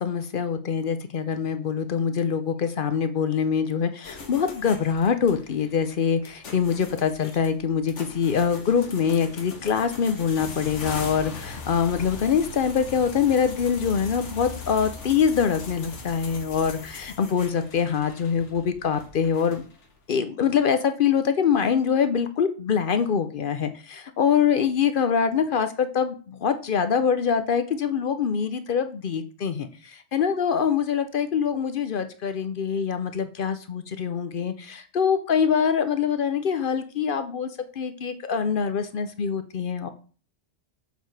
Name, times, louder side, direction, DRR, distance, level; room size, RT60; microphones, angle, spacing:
voice 1, 0.0-19.6 20.1-37.5 37.8-39.9, left 7 dB, 55° left, 9 dB, 0.7 m, -24 dB
sound 1, 4.0-20.0, left 4 dB, 85° left, 1.5 m, -40 dB
7.0 x 4.5 x 4.6 m, 0.40 s
omnidirectional pair, 1.2 m